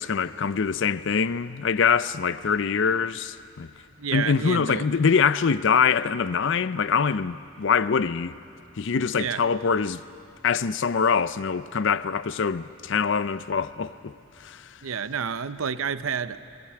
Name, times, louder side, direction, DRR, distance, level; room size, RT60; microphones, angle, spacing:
voice 1, 0.0-3.7 4.1-8.3 8.8-10.0 10.4-14.1 14.4-14.7, left 6 dB, 55° left, 0.5 m, -24 dB
voice 2, 4.0-4.8 9.2-9.4 14.8-16.4, right 7 dB, 70° right, 0.7 m, -29 dB
23.5 x 16.0 x 8.6 m
head